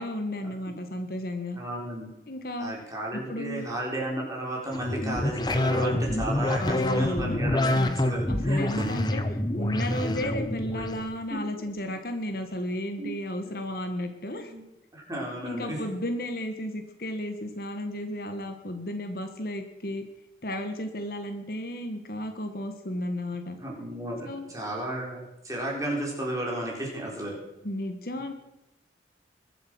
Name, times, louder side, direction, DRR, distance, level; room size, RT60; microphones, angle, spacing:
voice 1, 0.0-1.6 2.3-2.7 3.3-3.7 6.6-7.4 7.7-8.0 8.3-14.5 15.4-20.0 20.4-23.6 24.3-24.4 27.6-28.3, left 1 dB, 55° left, 6 dB, 1.5 m, -33 dB
voice 2, 1.5-2.1 2.6-9.0 11.3-11.4 13.0-13.1 13.4-13.6 14.3-14.6 14.9-15.8 23.6-27.4, right 1 dB, 20° right, -3 dB, 4.2 m, -33 dB
sound 1, 4.7-11.1, left 1 dB, 25° left, 0.9 m, -27 dB
21.5 x 8.0 x 6.2 m, 0.95 s
head